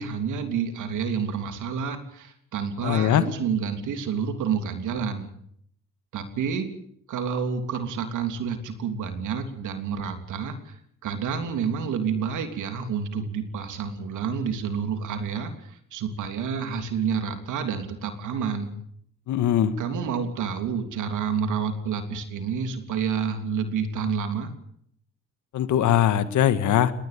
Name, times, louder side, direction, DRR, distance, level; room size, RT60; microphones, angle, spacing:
voice 1, 0.0-5.3 6.1-6.7 7.1-10.7 11.0-18.7 19.8-24.5, right 6 dB, 80° right, 7 dB, 3.3 m, -29 dB
voice 2, 2.8-3.2 19.3-19.7 25.5-26.9, left 10 dB, 75° left, 12 dB, 1.8 m, -21 dB
20.5 x 19.0 x 8.7 m, 0.67 s
cardioid pair, 90°, 30 cm